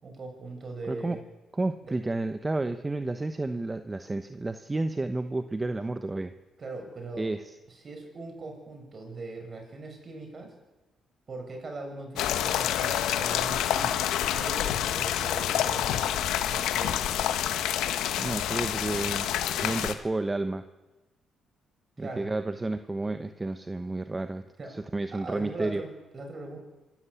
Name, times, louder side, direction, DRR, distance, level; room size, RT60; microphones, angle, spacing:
voice 1, 0.0-1.2 1.8-1.9 6.6-7.3 7.7-10.5 11.3-16.1 16.4-17.0 22.0-22.3 24.6-24.7 25.1-26.6, right 3 dB, 40° right, 4 dB, 6.3 m, -40 dB
voice 2, 1.5-6.3 7.2-7.5 18.2-20.6 22.0-24.4 24.7-25.8, right 2 dB, 20° right, 9 dB, 1.1 m, -31 dB
sound 1, 12.2-19.9, left 11 dB, 90° left, 1.4 m, -28 dB
26.0 x 13.5 x 8.5 m, 1.1 s
cardioid pair, 90°, 0 cm